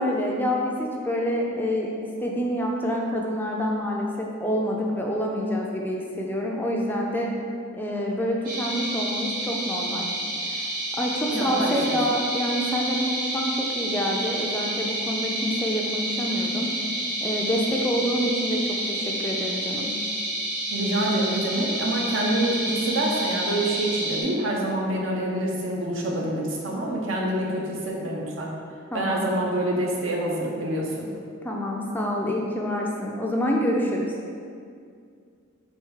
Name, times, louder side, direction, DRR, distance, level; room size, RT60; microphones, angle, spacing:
voice 1, 0.0-7.3 7.7-10.1 10.4-10.6 11.0-16.7 17.2-18.6 18.9-19.9 28.9-29.2 31.4-34.1, equal, 10° left, -1 dB, 0.3 m, -27 dB
sound 1, 8.4-24.2, right 1 dB, 45° right, 1.1 m, -29 dB
voice 2, 11.3-12.0 20.7-28.5 28.9-31.1, right 1 dB, 65° right, -2 dB, 0.7 m, -26 dB
3.3 x 3.1 x 4.7 m, 2.3 s
head